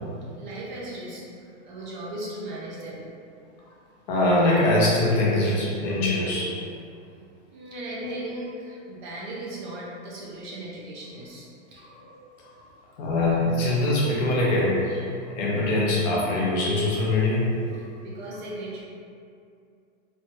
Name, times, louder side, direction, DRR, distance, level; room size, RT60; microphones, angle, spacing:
voice 1, 0.4-1.2 1.6-3.1 7.5-11.8 18.0-18.8, right 1 dB, 40° right, -5 dB, 0.5 m, -37 dB
voice 2, 4.1-6.6 8.0-8.1 11.8-12.2 13.0-15.1 15.4-17.5 17.7-17.8, left 2 dB, 35° left, -5 dB, 0.5 m, -23 dB
3.1 x 2.2 x 2.7 m, 2.5 s
supercardioid pair, 155°, 38 cm